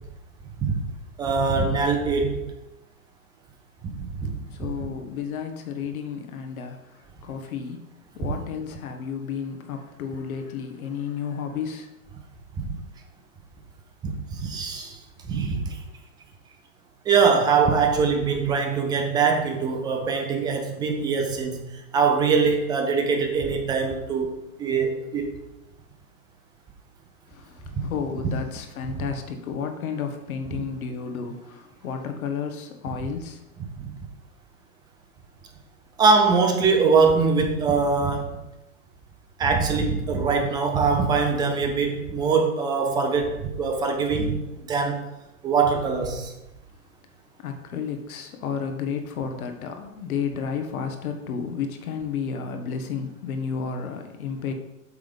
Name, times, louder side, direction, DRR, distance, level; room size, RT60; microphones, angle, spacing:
voice 1, 1.2-2.4 3.8-4.3 4.6-4.9 12.6-12.8 14.0-15.0 15.3-15.8 17.1-24.3 24.6-25.3 29.0-29.1 33.8-33.9 36.0-38.4 39.4-45.0 45.4-46.3, right 5 dB, 10° right, 4 dB, 0.4 m, -23 dB
voice 2, 4.5-6.8 7.2-7.9 8.1-11.9 27.3-33.4 47.4-54.5, left 6 dB, 70° left, 5 dB, 1.3 m, -32 dB
8.1 x 3.7 x 5.0 m, 0.96 s
hypercardioid pair, 125°, 45 cm